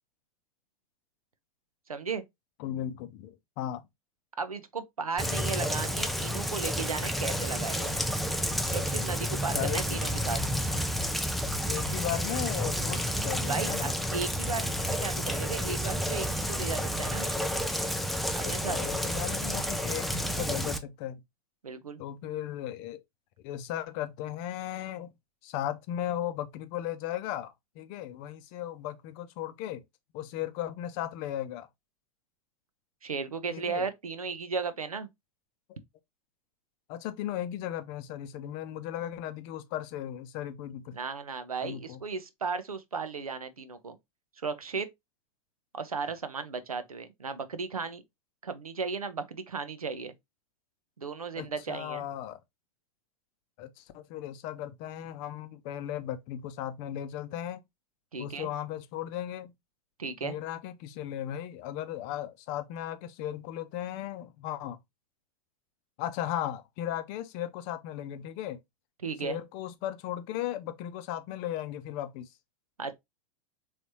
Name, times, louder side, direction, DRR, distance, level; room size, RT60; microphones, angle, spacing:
voice 1, 1.9-2.2 4.4-8.0 8.7-10.4 13.5-17.3 18.3-18.8 21.6-22.0 33.0-35.1 40.9-44.0 44.4-44.9 45.7-48.0 48.4-50.1 51.0-52.0 58.1-58.5 60.0-60.4 69.0-69.4 72.8-73.0, right 5 dB, 80° right, 0.7 m, -35 dB
voice 2, 2.6-3.8 9.3-10.0 11.7-13.9 18.4-21.2 22.0-23.0 23.4-25.1 25.4-29.8 30.1-31.7 33.5-33.9 35.7-35.8 36.9-41.0 41.6-42.0 51.4-52.4 53.6-57.6 58.2-59.5 60.2-64.8 66.0-68.6 69.2-72.3, left 11 dB, 40° left, 0.6 m, -36 dB
Rain, 5.2-20.8, equal, ahead, 0.4 m, -30 dB
4.0 x 3.2 x 3.0 m
figure-of-eight pair, 90°, 18 cm